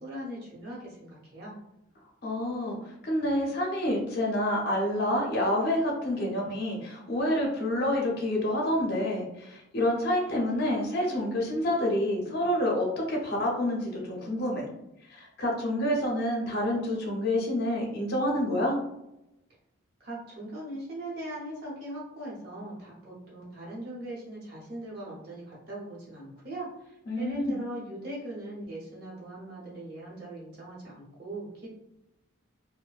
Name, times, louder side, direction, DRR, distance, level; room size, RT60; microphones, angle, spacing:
voice 1, 0.0-1.6 20.0-31.7, right 1 dB, 50° right, -6 dB, 0.9 m, -40 dB
voice 2, 2.2-14.7 15.1-18.8 27.1-27.6, left 1 dB, 50° left, -1 dB, 0.6 m, -28 dB
2.6 x 2.1 x 2.3 m, 0.87 s
head